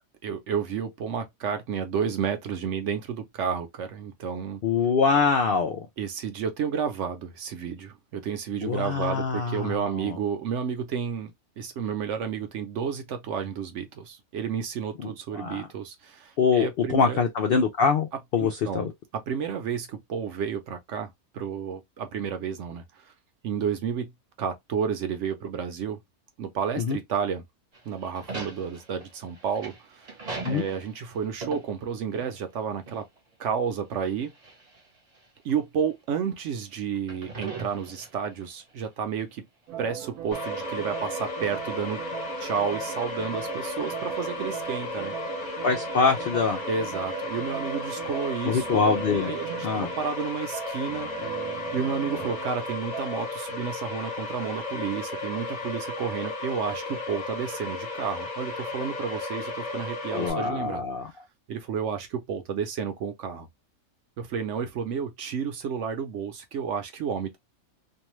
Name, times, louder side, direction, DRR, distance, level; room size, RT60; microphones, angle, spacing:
voice 1, 0.2-4.6 6.0-17.2 18.4-18.9 19.3-23.1 23.4-24.1 24.4-26.0 26.4-27.4 27.9-30.2 30.4-33.0 33.4-34.3 35.4-39.4 39.8-42.0 42.4-45.6 46.7-48.8 49.1-51.1 51.7-60.8 61.5-63.5 64.2-67.4, right 7 dB, 65° right, 0.9 m, -31 dB
voice 2, 4.6-5.9 8.6-10.2 15.0-15.7 16.4-18.9 26.8-27.0 30.4-30.6 45.6-46.6 48.4-49.4 49.6-49.9 60.1-61.1, left 5 dB, 70° left, 0.5 m, -24 dB
sound 1, 27.7-32.6 32.9-33.0 34.0-34.8 35.5-35.6 37.0-38.4, right 4 dB, 35° right, 0.7 m, -39 dB
sound 2, 39.7-53.2, right 9 dB, 90° right, 1.2 m, -39 dB
sound 3, 40.3-60.3, left 3 dB, 35° left, 0.9 m, -34 dB
2.6 x 2.2 x 2.9 m
omnidirectional pair, 1.5 m